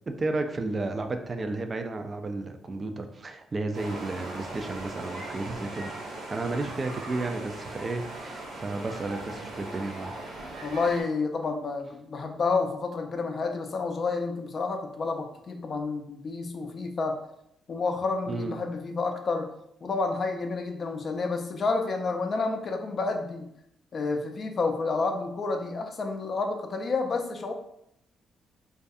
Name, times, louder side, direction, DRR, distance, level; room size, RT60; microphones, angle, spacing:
voice 1, 0.2-5.9 6.3-10.1 18.3-18.5, right 2 dB, 30° right, 7 dB, 0.3 m, -32 dB
sound 1, 3.7-11.0, right 2 dB, 85° right, 0.8 m, -39 dB
voice 2, 10.6-17.2 17.7-19.5 19.8-23.5 23.9-27.5, left 4 dB, 45° left, 5 dB, 0.4 m, -29 dB
2.3 x 2.3 x 2.6 m, 0.76 s
cardioid pair, 90°, 0 cm